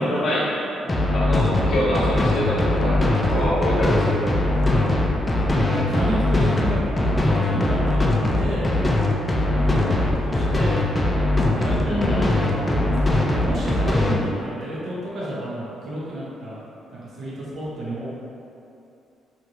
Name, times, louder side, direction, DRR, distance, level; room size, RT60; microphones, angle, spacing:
voice 1, 0.0-0.6 1.1-4.3 11.8-12.4, equal, 65° left, -7 dB, 0.8 m, -25 dB
sound 1, 0.9-14.1, left 1 dB, 20° left, 0.4 m, -21 dB
voice 2, 5.5-8.7 9.5-10.8 11.6-16.6 17.0-18.1, right 1 dB, 60° right, -7 dB, 0.9 m, -30 dB
3.0 x 2.6 x 2.6 m, 2.7 s
cardioid pair, 90°, 0 cm